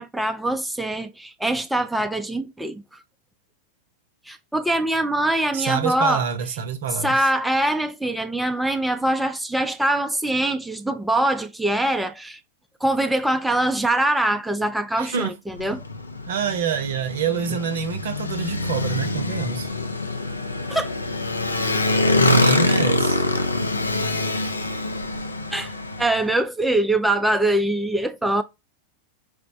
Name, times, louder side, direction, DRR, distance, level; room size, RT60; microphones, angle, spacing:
voice 1, 0.0-2.8 4.3-6.2 7.0-12.4 12.8-15.8 20.7-20.9 25.5-25.7 26.0-28.4, right 1 dB, 5° right, 0.3 m, -23 dB
voice 2, 5.5-7.2 15.0-15.4 16.3-19.7 22.2-23.3, right 7 dB, 60° right, 0.6 m, -26 dB
Motorcycle, 15.5-26.2, left 2 dB, 80° left, 0.4 m, -24 dB
4.8 x 2.1 x 2.6 m
figure-of-eight pair, 90°, 0 cm